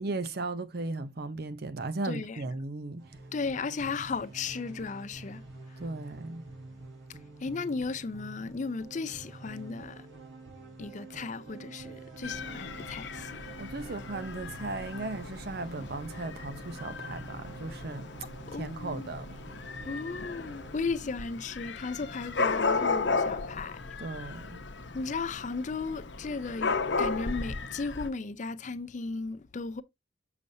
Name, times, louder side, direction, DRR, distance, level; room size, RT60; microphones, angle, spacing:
voice 1, 0.0-3.0 5.8-6.4 13.6-18.0 18.6-19.3 24.0-24.6, right 2 dB, 50° right, 0.6 m, -36 dB
voice 2, 2.0-2.4 3.3-5.4 7.4-10.1 10.8-13.4 18.5-19.1 19.8-23.8 24.9-29.8, left 4 dB, 40° left, 0.4 m, -35 dB
sound 1, 3.0-20.8, right 3 dB, 75° right, 3.7 m, -47 dB
Dog / Cat, 12.2-28.1, left 4 dB, 65° left, 0.8 m, -35 dB
6.9 x 6.5 x 2.7 m
head